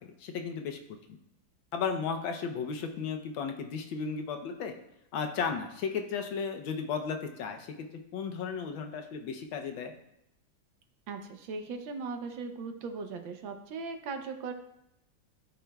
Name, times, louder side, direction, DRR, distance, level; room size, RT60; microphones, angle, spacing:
voice 1, 0.0-0.8 1.1-1.2 1.7-4.7 5.1-7.7 8.1-9.9, left 6 dB, 90° left, 4 dB, 1.5 m, -34 dB
voice 2, 11.1-14.5, right 4 dB, 80° right, 6 dB, 1.5 m, -38 dB
13.0 x 4.8 x 2.3 m, 0.81 s
omnidirectional pair, 2.1 m